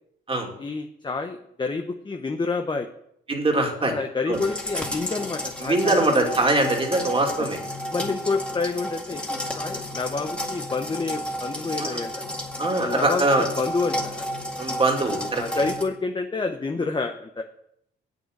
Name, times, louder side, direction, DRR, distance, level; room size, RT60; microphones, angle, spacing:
voice 1, 0.6-2.9 3.8-6.3 7.9-12.1 12.8-14.3 15.0-17.4, left 4 dB, 25° left, 5 dB, 0.9 m, -29 dB
voice 2, 3.3-3.9 4.3-4.4 5.6-7.6 11.8-12.0 12.6-13.5 14.6-15.4, right 2 dB, 25° right, 2 dB, 2.5 m, -22 dB
sound 1, 4.3-15.8, equal, 5° left, 2.1 m, -32 dB
7.9 x 7.9 x 6.6 m, 0.73 s
cardioid pair, 90°, 20 cm